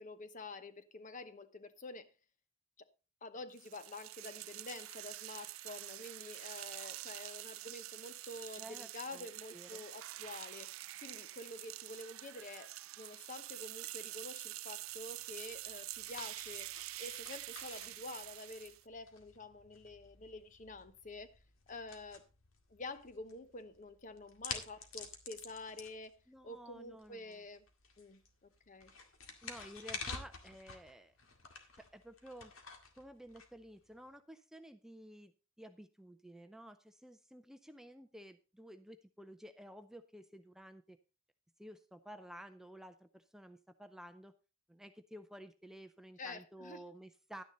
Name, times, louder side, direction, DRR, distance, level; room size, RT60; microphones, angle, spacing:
voice 1, 0.0-2.1 2.8-2.9 3.2-10.7 11.0-21.3 21.7-22.2 22.7-26.1 26.4-27.6 28.0-28.9 46.2-46.8, left 2 dB, 40° left, 0.9 m, -48 dB
sound 1, 3.6-18.8, right 16 dB, 90° right, 0.4 m, -47 dB
voice 2, 8.6-9.8 26.3-27.4 29.4-31.1 31.7-32.5 33.0-41.0 41.6-44.3 44.7-47.4, equal, ahead, 0.5 m, -53 dB
sound 2, 14.8-34.1, left 5 dB, 80° left, 2.0 m, -51 dB
11.5 x 9.6 x 3.9 m
head